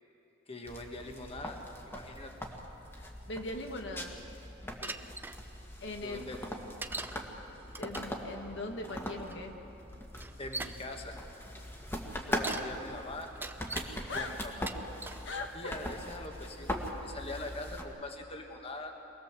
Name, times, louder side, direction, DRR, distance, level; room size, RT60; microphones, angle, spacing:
voice 1, 0.5-1.6 1.9-2.3 4.8-5.0 6.0-6.5 10.4-11.2 12.3-13.3 14.1-14.5 15.5-18.9, left 2 dB, 30° left, 3 dB, 1.6 m, -43 dB
sound 1, 0.7-17.8, equal, 15° left, 1.8 m, -41 dB
voice 2, 3.0-4.2 5.8-6.2 7.8-9.6 14.1-14.4 15.2-15.8, left 2 dB, 65° left, 3 dB, 1.5 m, -40 dB
Bicycle, 4.8-5.4 6.8-7.2 7.7-8.2 9.3-9.4 10.1-10.8 12.1-12.7 13.2-13.9 14.5-15.2 15.9-16.3, right 3 dB, 10° right, 0.6 m, -40 dB
23.5 x 19.0 x 7.5 m, 3.0 s
head